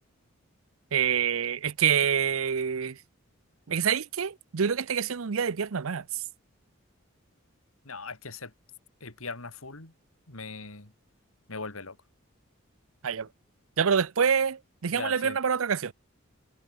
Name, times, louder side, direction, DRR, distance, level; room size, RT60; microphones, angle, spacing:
voice 1, 0.9-3.0 3.7-6.2 13.0-13.3 13.8-15.9, right 7 dB, 75° right, 0.6 m, -26 dB
voice 2, 7.8-8.5 9.0-9.9 10.3-10.9 11.5-12.0 14.9-15.4, left 4 dB, 80° left, 3.2 m, -39 dB
head